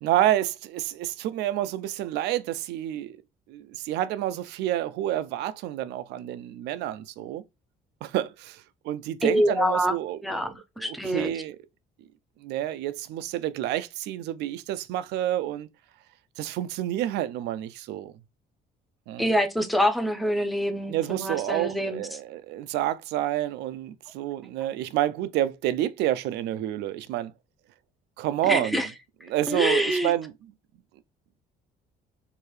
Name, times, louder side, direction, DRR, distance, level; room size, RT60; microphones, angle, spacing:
voice 1, 0.0-3.2 3.5-7.4 8.0-10.5 10.8-11.6 12.4-15.7 16.4-18.1 19.1-19.3 20.9-27.3 28.2-28.9 29.3-30.5, right 13 dB, 85° right, 0.4 m, -29 dB
voice 2, 9.2-9.9 10.2-11.3 19.2-22.2 28.5-28.9 29.5-30.1, equal, ahead, 0.6 m, -25 dB
4.7 x 2.6 x 3.2 m
cardioid pair, 110°, 17 cm